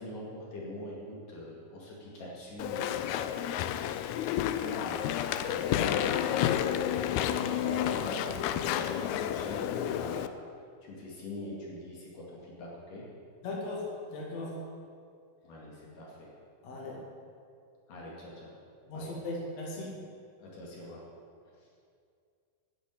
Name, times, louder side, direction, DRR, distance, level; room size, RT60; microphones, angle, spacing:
voice 1, 0.0-3.9 4.5-10.3 10.8-13.0 15.4-16.3 17.9-18.5 18.9-19.1 20.4-21.0 21.4-21.6, left 1 dB, 70° left, -4 dB, 3.8 m, -43 dB
Walk footsteps / Chatter / Squeak, 2.6-10.3, left 11 dB, 85° left, 1.6 m, -30 dB
voice 2, 13.4-14.6 16.6-17.0 18.8-20.0, left 2 dB, 50° left, -4 dB, 3.5 m, -38 dB
10.0 x 9.7 x 9.7 m, 2.3 s
omnidirectional pair, 4.0 m